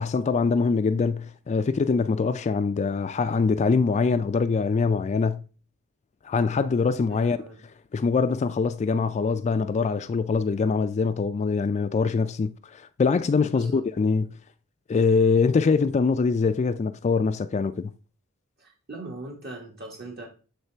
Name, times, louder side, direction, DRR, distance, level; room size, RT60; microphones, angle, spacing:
voice 1, 0.0-5.4 6.2-7.4 7.9-14.3 14.9-17.9, left 4 dB, 30° left, 0.3 m, -23 dB
voice 2, 7.1-7.6 13.5-13.9 18.6-20.3, right 2 dB, 45° right, 1.3 m, -40 dB
8.0 x 3.2 x 4.4 m
head